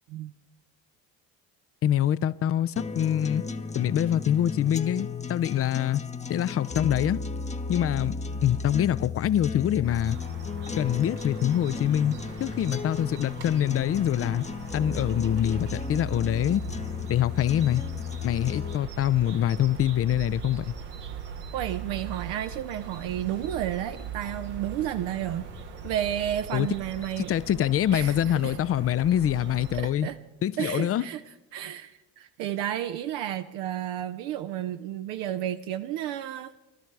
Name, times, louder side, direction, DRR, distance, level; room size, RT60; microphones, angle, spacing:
voice 1, 1.8-3.4 3.7-6.0 6.3-7.2 7.7-8.1 8.4-10.2 10.8-14.4 14.7-16.6 17.1-17.8 18.2-20.7 26.5-26.7 27.3-30.1 30.4-31.1, left 11 dB, 30° left, 0.5 m, -25 dB
sound 1, 2.8-18.8, left 4 dB, 15° left, 0.8 m, -34 dB
sound 2, 9.8-29.8, right 5 dB, 85° right, 1.5 m, -41 dB
voice 2, 21.5-25.5 25.8-27.3 27.9-28.6 29.7-30.2 30.6-31.2 31.5-36.6, right 11 dB, 65° right, 0.7 m, -32 dB
16.5 x 12.5 x 4.6 m
hypercardioid pair, 55°, 46 cm